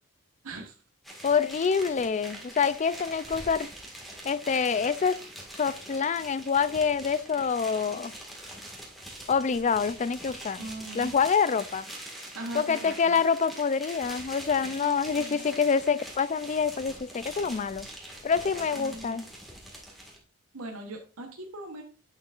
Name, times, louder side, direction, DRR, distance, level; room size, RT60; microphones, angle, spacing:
voice 1, 0.4-0.8 10.6-11.1 12.3-13.2 14.8-15.5 18.7-19.3 20.5-21.8, right 2 dB, 75° right, 1.1 m, -40 dB
sound 1, 1.0-20.2, right 1 dB, ahead, 1.8 m, -43 dB
voice 2, 1.2-3.7 4.2-5.2 5.5-8.1 9.3-10.7 10.9-11.9 12.5-17.9 18.2-19.3, left 6 dB, 35° left, 0.3 m, -26 dB
8.9 x 6.7 x 2.5 m
head